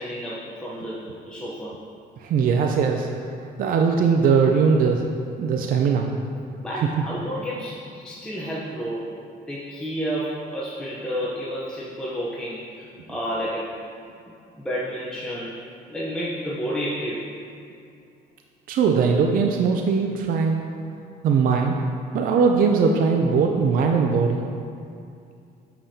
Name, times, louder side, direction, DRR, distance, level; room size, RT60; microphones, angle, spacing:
voice 1, 0.0-1.7 6.6-9.1 9.5-13.7 14.2-15.6 15.9-17.2, equal, 5° left, -7 dB, 0.7 m, -31 dB
voice 2, 2.2-3.1 3.6-5.0 5.4-6.1 18.7-20.6 21.2-21.8 22.1-24.4, right 5 dB, 55° right, 2 dB, 0.4 m, -20 dB
6.7 x 5.6 x 2.8 m, 2.5 s
cardioid pair, 110°, 17 cm